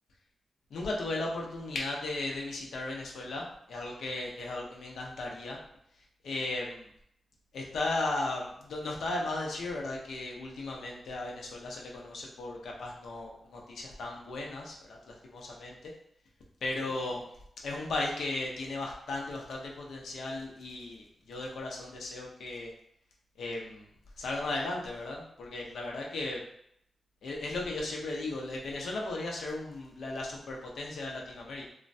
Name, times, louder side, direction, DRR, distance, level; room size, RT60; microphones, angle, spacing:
voice 1, 0.7-5.6 6.2-6.9 7.5-15.9 16.6-17.2 17.6-22.7 23.4-23.9 24.2-26.4 27.2-31.7, left 2 dB, 85° left, -1 dB, 0.6 m, -36 dB
3.0 x 2.1 x 2.6 m, 0.72 s
wide cardioid pair, 110°, 0 cm